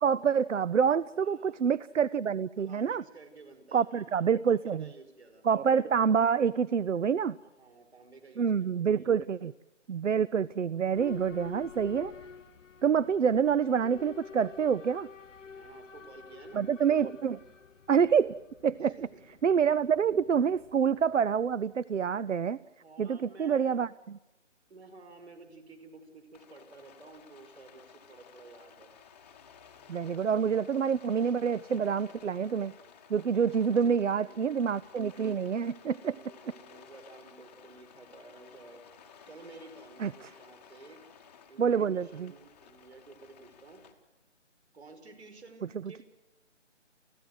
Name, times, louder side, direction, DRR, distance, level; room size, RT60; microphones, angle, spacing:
voice 1, 0.0-3.0 3.7-4.9 5.4-7.4 8.4-9.5 9.9-12.1 12.8-15.1 16.5-17.4 17.9-18.3 18.6-19.0 19.4-22.6 23.0-24.2 29.9-32.7 33.1-36.1 40.0-40.1 41.6-42.3, right 7 dB, 75° right, 19 dB, 0.7 m, -27 dB
voice 2, 1.1-1.7 2.6-5.4 7.4-9.5 15.4-16.6 18.8-19.2 22.6-23.8 24.7-28.9 33.6-34.4 36.0-38.9 39.3-41.0 41.5-43.8 44.7-46.0, right 3 dB, 60° right, 8 dB, 5.4 m, -52 dB
Boat Water vehicle / Alarm, 10.9-21.6, left 5 dB, 90° left, 0.9 m, -49 dB
Rain, 26.3-43.9, left 7 dB, 10° left, 1.0 m, -55 dB
29.5 x 15.5 x 7.9 m, 1.1 s
figure-of-eight pair, 160°, 37 cm